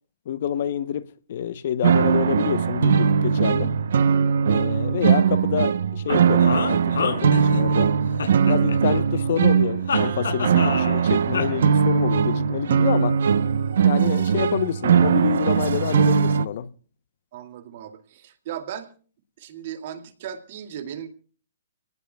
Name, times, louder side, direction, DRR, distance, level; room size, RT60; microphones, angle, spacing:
voice 1, 0.3-3.7 4.4-7.9 8.5-13.2 13.8-16.7, left 9 dB, 45° left, 0.8 m, -27 dB
sound 1, 1.8-16.4, right 7 dB, 60° right, 0.8 m, -20 dB
sound 2, 6.1-7.8 8.2-9.2 9.9-11.0 11.3-11.5, left 5 dB, 85° left, 6.2 m, -27 dB
voice 2, 17.3-18.9 19.4-21.1, right 9 dB, 40° right, 2.4 m, -36 dB
29.5 x 19.0 x 2.3 m
hypercardioid pair, 170°, 0 cm